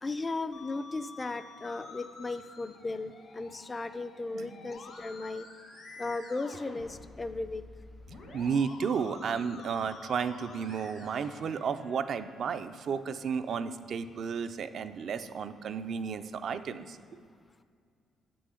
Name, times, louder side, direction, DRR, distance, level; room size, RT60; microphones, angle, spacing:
voice 1, 0.0-5.5 6.0-7.6, left 3 dB, 25° left, 12 dB, 0.4 m, -36 dB
Musical instrument, 0.5-12.5, left 3 dB, 70° left, 1.5 m, -49 dB
voice 2, 4.3-4.6 8.3-17.0, right 6 dB, 60° right, 10 dB, 0.4 m, -33 dB
7.7 x 6.2 x 5.6 m, 2.2 s
cardioid pair, 90°, 0 cm